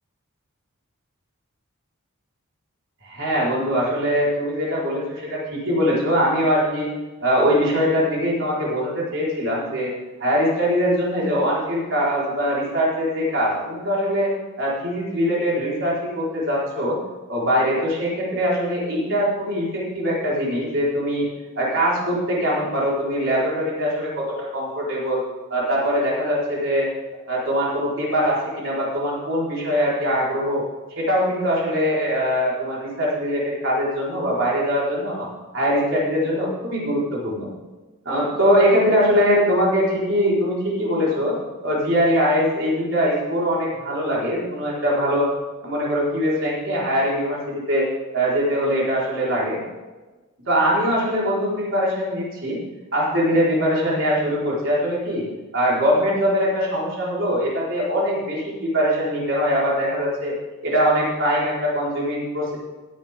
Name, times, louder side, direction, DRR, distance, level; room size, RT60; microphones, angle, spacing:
voice 1, 3.0-6.9 7.2-9.9 10.2-17.0 17.3-21.3 21.5-25.2 25.5-26.9 27.3-30.6 30.9-35.3 35.5-37.5 38.0-45.3 45.6-47.9 48.1-49.6 50.5-52.6 52.9-55.2 55.5-60.3 60.6-62.6, equal, 60° right, -6 dB, 4.9 m, -22 dB
17.0 x 10.0 x 3.8 m, 1.2 s
head